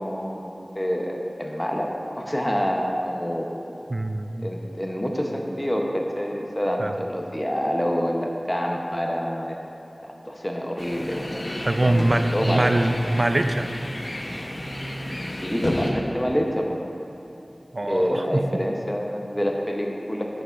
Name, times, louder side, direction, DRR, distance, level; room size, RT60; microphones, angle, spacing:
voice 1, 0.0-3.5 4.4-9.6 10.0-11.5 11.8-12.9 15.4-16.8 17.9-20.3, equal, 15° left, 0 dB, 0.7 m, -27 dB
voice 2, 3.9-4.5 6.8-6.9 11.6-13.8 17.7-18.6, right 1 dB, 50° right, 8 dB, 0.3 m, -23 dB
sound 1, 10.8-15.9, left 1 dB, 55° left, 0.8 m, -31 dB
8.8 x 6.6 x 2.5 m, 2.9 s
wide cardioid pair, 45°, 0 cm